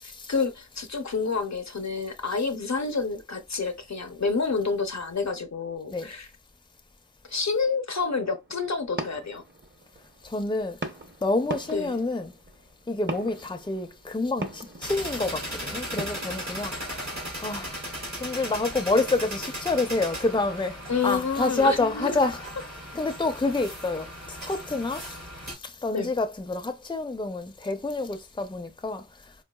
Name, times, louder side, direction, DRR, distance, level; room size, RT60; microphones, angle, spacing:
voice 1, 0.0-6.3 7.3-9.4 11.7-12.0 20.9-22.3 25.9-26.1, left 4 dB, 70° left, 0.7 m, -29 dB
sound 1, 8.2-20.3, right 2 dB, 40° right, 0.9 m, -42 dB
voice 2, 10.2-10.8 11.2-12.3 12.9-17.1 17.4-17.8 18.2-22.5 22.7-25.2 25.6-29.1, left 2 dB, 15° left, 0.5 m, -28 dB
sound 2, 14.8-25.5, equal, 70° right, 2.1 m, -37 dB
4.7 x 2.3 x 2.3 m
wide cardioid pair, 50°, 29 cm